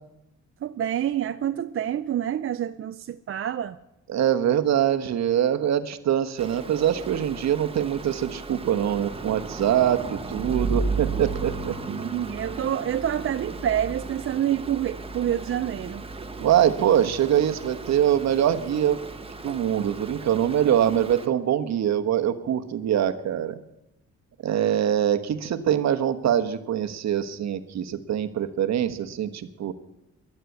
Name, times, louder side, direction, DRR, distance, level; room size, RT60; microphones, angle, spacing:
voice 1, 0.6-3.8 11.9-16.0, right 10 dB, 45° right, 0.5 m, -27 dB
voice 2, 4.1-11.9 16.4-19.0 19.4-23.6 24.4-29.7, right 10 dB, 65° right, 1.2 m, -23 dB
Stream, 6.4-21.3, right 3 dB, 20° right, 1.3 m, -35 dB
12.5 x 11.0 x 8.4 m
cardioid pair, 90°, 30 cm